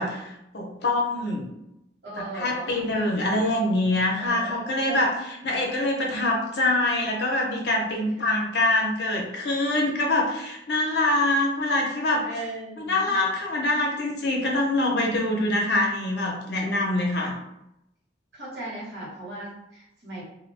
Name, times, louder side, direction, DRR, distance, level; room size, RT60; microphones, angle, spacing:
voice 1, 0.0-1.5 2.2-12.2 12.8-17.4, left 2 dB, 60° left, 0 dB, 0.6 m, -25 dB
voice 2, 2.0-2.9 4.2-5.3 8.2-8.3 12.2-13.2 18.3-20.2, right 2 dB, 70° right, -6 dB, 1.1 m, -38 dB
2.2 x 2.1 x 3.1 m, 0.84 s
head